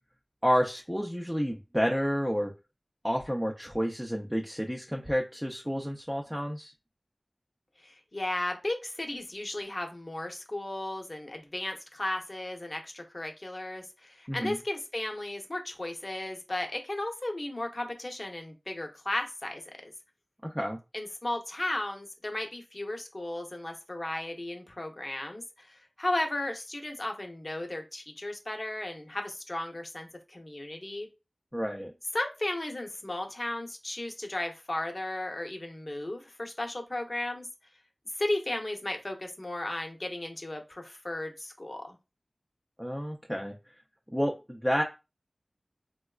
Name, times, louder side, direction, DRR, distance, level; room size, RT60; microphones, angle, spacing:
voice 1, 0.4-2.5 3.0-6.7 14.3-14.6 20.4-20.8 31.5-31.9 42.8-43.5 44.1-44.8, equal, ahead, 0 dB, 0.5 m, -30 dB
voice 2, 7.8-19.9 20.9-31.1 32.1-37.5 38.1-42.0, left 1 dB, 45° left, 3 dB, 0.8 m, -35 dB
4.0 x 2.2 x 2.3 m, 0.27 s
wide cardioid pair, 50°, 0 cm